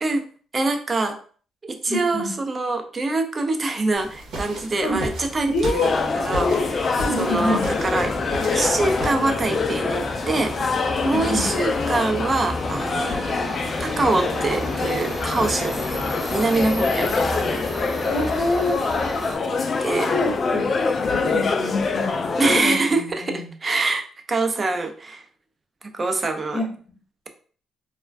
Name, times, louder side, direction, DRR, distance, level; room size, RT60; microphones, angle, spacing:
voice 1, 0.5-1.2 1.6-5.9 6.2-8.1 8.5-10.6 11.0-13.2 13.8-17.6 19.8-20.1 22.4-25.3 25.8-26.6, right 3 dB, 35° right, 6 dB, 0.4 m, -24 dB
voice 2, 1.9-2.3 4.8-5.0 5.5-5.9 7.0-7.7 11.0-11.5 18.0-18.8 19.9-22.8 23.2-23.5 26.5-26.7, left 2 dB, 75° left, -3 dB, 0.8 m, -26 dB
sound 1, 3.9-9.2, right 1 dB, 75° right, 0.9 m, -34 dB
Subway metro underground, 4.9-19.4, equal, ahead, 0.8 m, -33 dB
sound 2, 5.8-22.6, left 4 dB, 45° left, 0.3 m, -25 dB
2.3 x 2.2 x 3.3 m, 0.43 s
cardioid pair, 90°, 0 cm